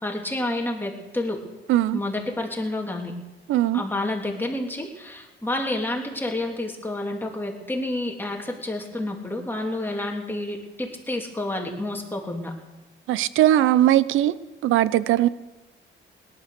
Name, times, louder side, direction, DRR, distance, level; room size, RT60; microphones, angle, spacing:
voice 1, 0.0-1.4 1.9-3.1 3.7-12.5, left 1 dB, 10° left, 3.2 m, -29 dB
voice 2, 3.5-3.8 13.1-14.3 14.6-15.3, right 13 dB, 85° right, 0.6 m, -19 dB
18.0 x 12.0 x 6.7 m
cardioid pair, 90°, 20 cm